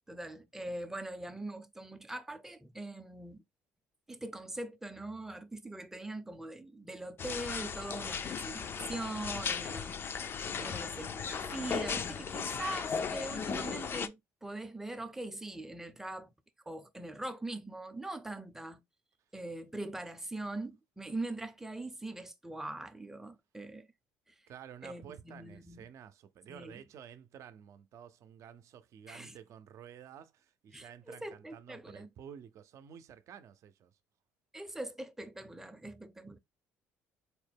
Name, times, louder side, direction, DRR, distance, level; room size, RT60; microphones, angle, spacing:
voice 1, 0.1-3.4 4.1-10.0 10.6-16.3 16.7-18.8 19.3-23.9 24.8-25.8 26.5-26.8 29.1-29.4 30.7-32.1 34.5-36.4, right 2 dB, 5° right, 0.6 m, -42 dB
sound 1, 7.2-14.1, left 6 dB, 40° left, 0.4 m, -36 dB
voice 2, 24.5-34.0, right 8 dB, 60° right, 0.6 m, -51 dB
4.3 x 2.1 x 3.4 m
cardioid pair, 95°, 6 cm